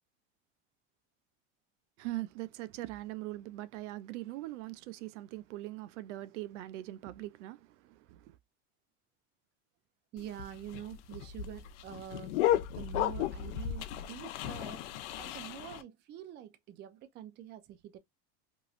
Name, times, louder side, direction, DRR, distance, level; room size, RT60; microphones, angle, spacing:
voice 1, 2.0-8.4, right 17 dB, 85° right, 0.5 m, -41 dB
voice 2, 10.1-14.9 15.1-18.0, right 11 dB, 30° right, 0.5 m, -46 dB
sound 1, 10.2-15.8, left 12 dB, 80° left, 0.6 m, -34 dB
3.0 x 2.7 x 2.4 m
supercardioid pair, 130°, 35 cm